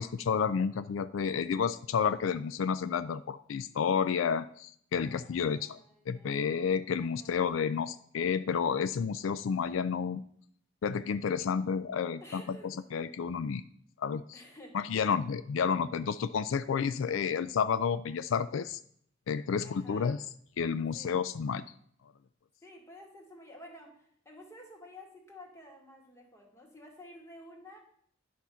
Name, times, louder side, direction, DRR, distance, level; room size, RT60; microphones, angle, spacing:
voice 1, 0.0-5.8 6.1-10.2 10.8-13.6 14.0-14.4 14.7-18.8 19.3-20.2 20.6-21.6, left 6 dB, 80° left, 14 dB, 0.4 m, -30 dB
voice 2, 5.0-6.5 7.0-7.4 12.2-12.7 13.0-13.1 14.3-14.7 19.6-20.2 20.9-21.2 22.6-27.8, left 1 dB, 15° left, 0 dB, 2.1 m, -52 dB
10.5 x 5.9 x 5.6 m, 0.65 s
head